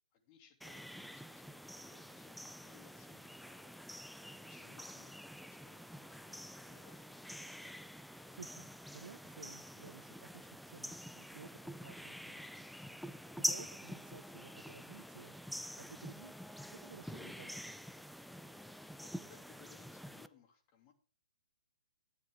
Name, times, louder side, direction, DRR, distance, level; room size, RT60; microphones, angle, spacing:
voice 1, 0.1-3.8 4.5-7.6 18.8-20.9, left 8 dB, 35° left, 5 dB, 3.0 m, -65 dB
sound 1, 0.6-20.3, equal, ahead, 0.4 m, -46 dB
voice 2, 8.3-8.7 8.9-12.4 13.3-15.4 15.8-16.4 16.7-17.6, right 5 dB, 80° right, 18 dB, 0.7 m, -55 dB
13.0 x 10.0 x 3.8 m, 0.37 s
hypercardioid pair, 130°, 4 cm